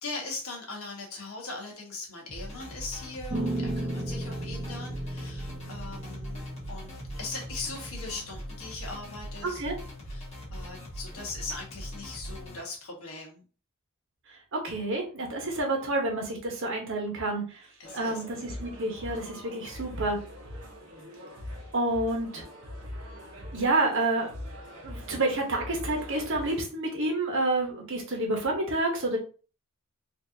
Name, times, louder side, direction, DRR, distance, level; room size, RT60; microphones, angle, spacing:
voice 1, 0.0-6.4 6.7-6.9 7.2-9.6 10.1-13.4 17.8-18.2, left 3 dB, 65° left, 0 dB, 1.4 m, -40 dB
sound 1, 2.3-12.6, equal, 30° left, 1.5 m, -41 dB
sound 2, 3.3-8.3, right 1 dB, 35° right, 0.8 m, -36 dB
voice 2, 14.5-17.4 17.9-20.2 21.7-22.4 23.5-24.3 24.8-29.2, right 2 dB, 60° right, 1 dB, 1.2 m, -29 dB
sound 3, 17.8-26.6, left 1 dB, 85° right, 1.2 m, -42 dB
4.3 x 2.7 x 2.7 m, 0.37 s
head